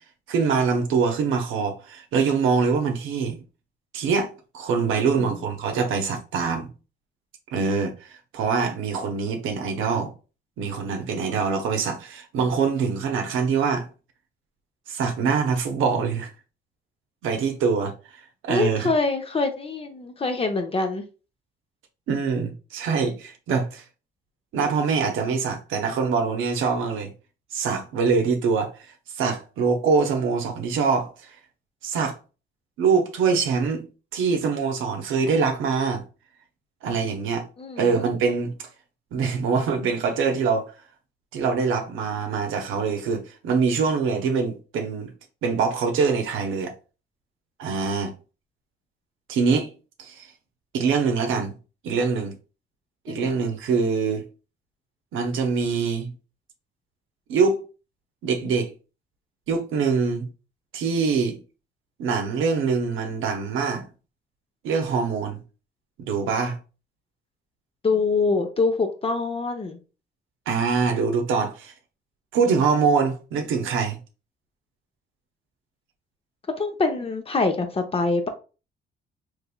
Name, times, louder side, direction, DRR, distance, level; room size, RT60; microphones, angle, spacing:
voice 1, 0.3-3.4 3.9-6.7 7.5-10.1 10.6-13.9 14.9-16.3 17.2-18.9 22.1-23.8 24.5-27.1 27.5-31.3 31.8-32.2 32.8-33.8 34.1-36.0 36.8-37.4 37.8-38.7 39.1-40.7 41.3-45.1 45.4-46.7 47.6-48.1 49.3-49.7 50.0-50.3 50.7-51.5 51.8-52.4 53.1-54.2 55.1-56.1 57.3-57.7 58.2-58.7 59.5-60.3 60.7-61.4 62.0-63.8 64.6-65.4 66.0-66.6 70.5-71.7 72.3-74.0, right 5 dB, 85° right, 0.7 m, -24 dB
voice 2, 4.9-5.4 18.5-21.0 37.6-38.0 53.1-53.3 67.8-69.8 76.6-78.3, left 3 dB, 30° left, 0.7 m, -25 dB
3.5 x 3.2 x 2.2 m
cardioid pair, 90°, 20 cm